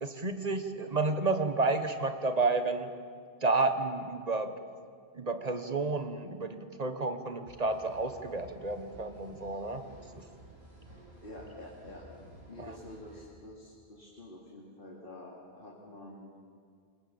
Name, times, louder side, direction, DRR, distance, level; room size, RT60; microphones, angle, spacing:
voice 1, 0.0-2.9 3.4-4.5 5.1-9.9 10.1-10.2 12.6-12.7, right 3 dB, 35° right, 8 dB, 1.5 m, -31 dB
sound 1, 7.4-13.2, right 1 dB, 70° right, 7.1 m, -53 dB
voice 2, 11.2-12.0 12.5-16.3, left 1 dB, 55° left, -3 dB, 3.2 m, -48 dB
27.5 x 22.0 x 7.2 m, 2.1 s
omnidirectional pair, 1.1 m